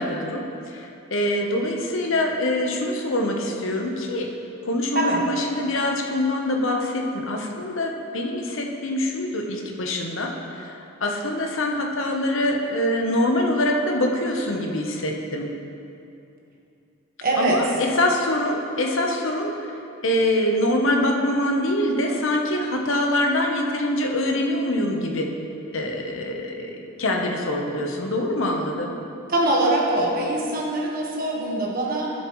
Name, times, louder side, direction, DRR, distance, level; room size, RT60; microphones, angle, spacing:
voice 1, 0.0-4.3 4.6-15.5 17.4-19.7 20.0-25.3 25.7-29.0, left 1 dB, 65° left, 1 dB, 1.0 m, -24 dB
voice 2, 17.2-17.6 29.3-32.1, right 2 dB, 40° right, -3 dB, 1.4 m, -23 dB
12.0 x 7.3 x 3.1 m, 2.7 s
head